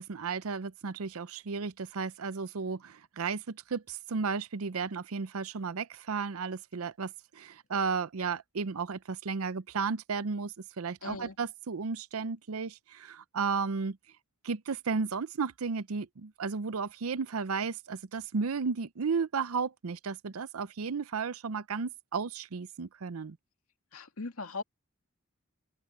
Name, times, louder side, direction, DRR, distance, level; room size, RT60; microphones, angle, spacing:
voice 1, 0.0-14.0 14.4-23.4, right 5 dB, 80° right, 0.6 m, -34 dB
voice 2, 11.0-11.3 23.9-24.6, left 3 dB, 85° left, 2.2 m, -39 dB
open air
head